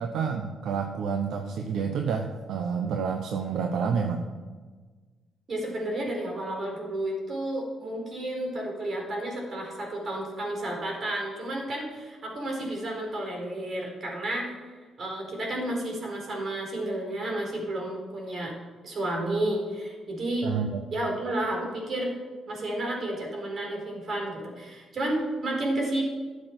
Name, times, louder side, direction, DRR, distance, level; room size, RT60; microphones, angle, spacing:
voice 1, 0.0-4.2 20.4-20.8, right 6 dB, 75° right, 4 dB, 1.0 m, -29 dB
voice 2, 5.5-14.5 15.0-18.5 18.8-20.5 20.9-22.2 22.5-26.0, right 1 dB, 50° right, 0 dB, 4.4 m, -31 dB
13.0 x 7.5 x 6.1 m, 1.4 s
cardioid pair, 90°, 0 cm